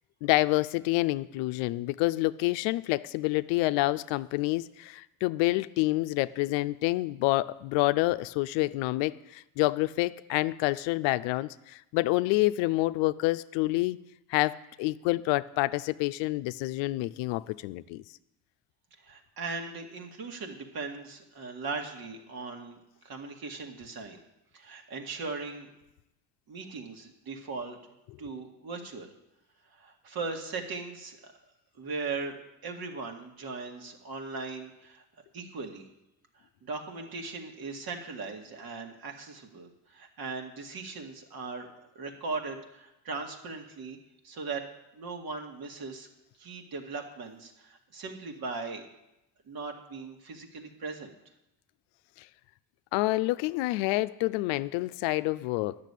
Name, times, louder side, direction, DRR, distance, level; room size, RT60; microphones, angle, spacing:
voice 1, 0.2-14.0 14.3-18.0 52.9-55.8, left 19 dB, 75° left, 14 dB, 0.6 m, -28 dB
voice 2, 19.0-22.8 23.0-24.2 24.5-25.7 26.5-27.8 28.2-29.1 29.8-31.3 31.8-32.4 32.6-35.0 35.3-35.9 36.6-41.7 41.9-44.0 44.2-44.6 44.9-46.1 46.4-48.9 49.5-51.1, right 4 dB, 50° right, 3 dB, 2.2 m, -38 dB
10.5 x 6.9 x 8.3 m, 0.90 s
supercardioid pair, 75°, 45 cm